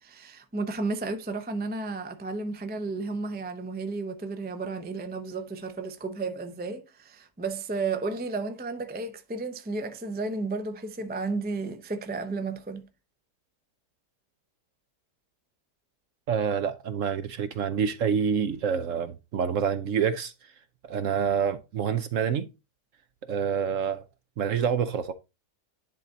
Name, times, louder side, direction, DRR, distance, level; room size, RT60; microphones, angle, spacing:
voice 1, 0.0-12.8, right 3 dB, 15° right, 0.3 m, -33 dB
voice 2, 16.3-20.3 20.8-22.5 23.3-24.0 24.4-25.1, right 7 dB, 60° right, 0.9 m, -27 dB
10.5 x 3.9 x 4.0 m
omnidirectional pair, 1.8 m